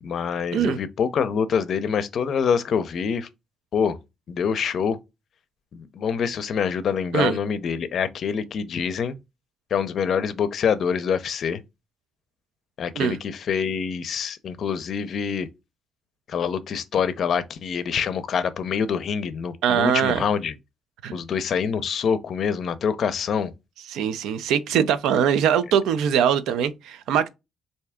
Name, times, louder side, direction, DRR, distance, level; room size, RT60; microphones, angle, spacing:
voice 1, 0.0-3.3 3.7-4.0 4.3-5.0 5.7-9.2 9.7-11.6 12.8-15.5 16.3-20.6 21.1-23.5, left 7 dB, 60° left, 0.5 m, -25 dB
voice 2, 19.6-20.2 21.0-21.2 23.9-27.3, right 8 dB, 90° right, 0.4 m, -22 dB
3.3 x 2.7 x 3.5 m
cardioid pair, 90°, 0 cm